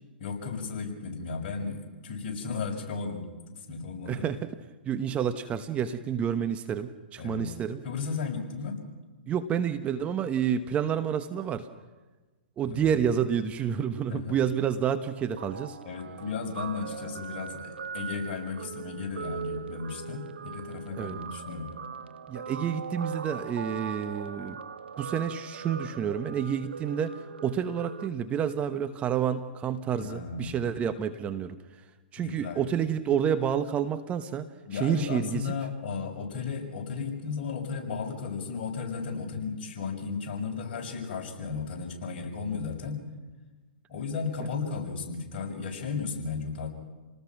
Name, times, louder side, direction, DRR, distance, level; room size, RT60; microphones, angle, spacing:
voice 1, 0.2-3.2 3.7-4.2 7.2-7.5 7.8-8.8 12.6-13.0 14.1-14.4 15.8-21.7 30.0-30.6 32.2-32.6 34.7-43.0 43.9-46.7, left 5 dB, 50° left, 0 dB, 6.6 m, -34 dB
voice 2, 4.1-4.5 4.8-7.8 9.3-11.7 12.6-15.8 21.0-21.2 22.3-24.6 25.0-31.6 32.1-35.5, right 8 dB, 20° right, 10 dB, 1.0 m, -29 dB
Guitar, 15.4-28.1, right 6 dB, 80° right, 1.2 m, -40 dB
29.0 x 19.0 x 6.1 m, 1.3 s
hypercardioid pair, 125°, 6 cm